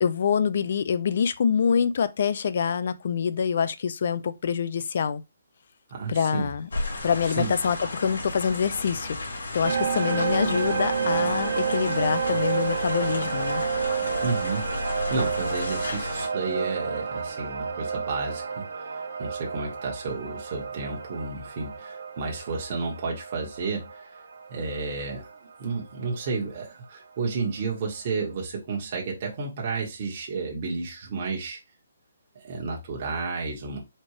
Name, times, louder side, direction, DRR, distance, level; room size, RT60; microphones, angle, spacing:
voice 1, 0.0-5.2 6.1-6.7 7.0-13.6, left 7 dB, 50° left, 0.5 m, -25 dB
voice 2, 5.9-6.5 7.4-7.5 14.2-24.2 24.5-25.3 25.6-31.6 32.3-33.8, right 4 dB, 35° right, 1.2 m, -32 dB
sound 1, 6.7-16.3, left 2 dB, 85° left, 1.9 m, -34 dB
sound 2, 9.6-26.6, right 6 dB, 70° right, 1.1 m, -30 dB
4.4 x 2.4 x 4.7 m
hypercardioid pair, 165°, 0 cm